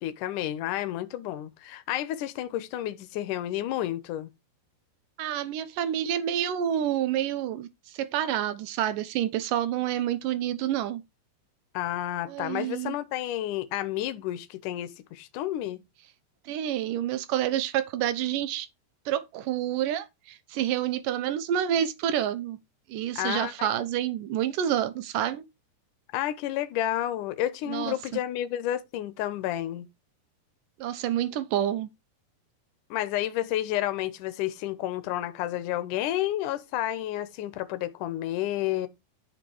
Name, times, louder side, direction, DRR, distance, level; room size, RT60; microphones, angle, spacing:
voice 1, 0.0-4.3 11.7-15.8 23.2-23.7 26.1-29.9 32.9-38.9, left 13 dB, 70° left, 2.1 m, -30 dB
voice 2, 5.2-11.0 12.3-13.0 16.5-18.7 19.1-22.6 22.9-25.4 27.7-28.2 30.8-31.9, right 11 dB, 70° right, 2.2 m, -28 dB
12.5 x 6.0 x 4.6 m
omnidirectional pair, 4.8 m